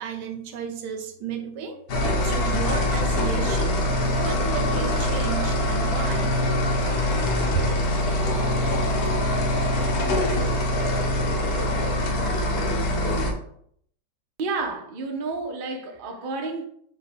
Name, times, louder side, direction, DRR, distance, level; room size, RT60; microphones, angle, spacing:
voice 1, 0.0-3.8 4.2-6.4 7.5-7.7, right 7 dB, 85° right, 6 dB, 1.3 m, -33 dB
sound 1, 1.9-13.3, left 1 dB, 85° left, 1.5 m, -23 dB
voice 2, 14.4-16.7, right 3 dB, 55° right, 3 dB, 0.6 m, -30 dB
4.9 x 2.2 x 4.9 m, 0.66 s
omnidirectional pair, 1.8 m